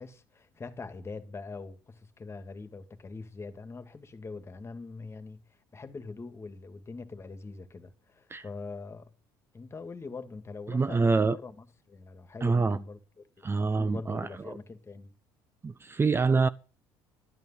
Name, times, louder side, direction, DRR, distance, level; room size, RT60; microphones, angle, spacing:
voice 1, 0.0-5.4 5.7-9.1 9.5-15.1, left 4 dB, 25° left, 2.1 m, -43 dB
voice 2, 10.7-11.4 12.4-12.8 13.4-14.3 15.6-16.5, right 4 dB, 25° right, 0.7 m, -25 dB
12.5 x 9.4 x 5.7 m
supercardioid pair, 80°, 10 cm